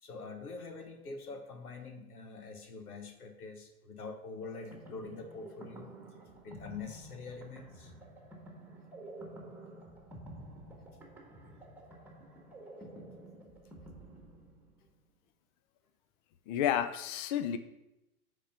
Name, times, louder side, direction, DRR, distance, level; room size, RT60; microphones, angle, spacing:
voice 1, 0.0-5.9 6.4-7.9, left 4 dB, 85° left, 6 dB, 1.3 m, -45 dB
sound 1, 4.4-14.9, right 1 dB, 5° right, 1.5 m, -50 dB
voice 2, 16.5-17.6, left 10 dB, 35° left, 11 dB, 0.4 m, -31 dB
8.3 x 3.7 x 5.7 m, 0.91 s
hypercardioid pair, 105°, 44 cm